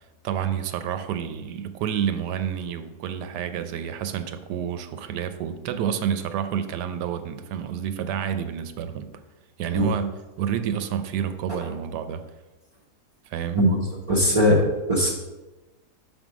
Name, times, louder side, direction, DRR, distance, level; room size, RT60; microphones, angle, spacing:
voice 1, 0.2-9.1 9.6-10.1 10.4-12.2 13.3-13.7, right 9 dB, 85° right, 10 dB, 1.2 m, -29 dB
voice 2, 14.1-15.1, equal, 35° right, -5 dB, 0.6 m, -20 dB
6.1 x 3.5 x 6.0 m, 1.1 s
omnidirectional pair, 1.8 m